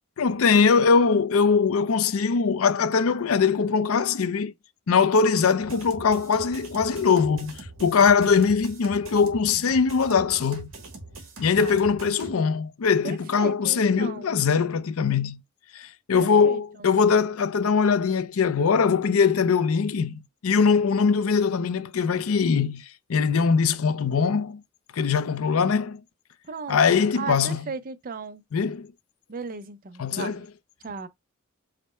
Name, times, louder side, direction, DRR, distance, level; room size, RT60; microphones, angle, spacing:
voice 1, 0.2-4.5 4.9-10.7 11.4-15.4 15.7-24.6 24.9-26.0 26.7-27.7 28.5-28.9 30.0-30.5, left 5 dB, 70° left, 0.5 m, -22 dB
sound 1, 5.6-12.3, right 2 dB, 65° right, 1.3 m, -43 dB
voice 2, 11.6-12.4 13.0-14.3 16.1-16.6 26.5-28.4 29.3-30.5 30.8-31.1, right 4 dB, 40° right, 0.5 m, -36 dB
5.0 x 2.1 x 4.2 m
head